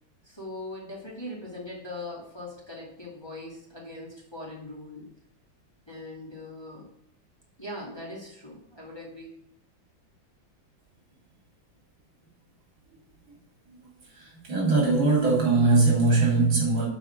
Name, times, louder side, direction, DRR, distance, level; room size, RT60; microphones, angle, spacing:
voice 1, 0.2-5.1 5.9-6.9 7.6-9.3, left 1 dB, 15° left, 2.2 m, -40 dB
voice 2, 14.2-16.9, right 3 dB, 75° right, 4.1 m, -21 dB
7.7 x 4.8 x 7.0 m
omnidirectional pair, 2.2 m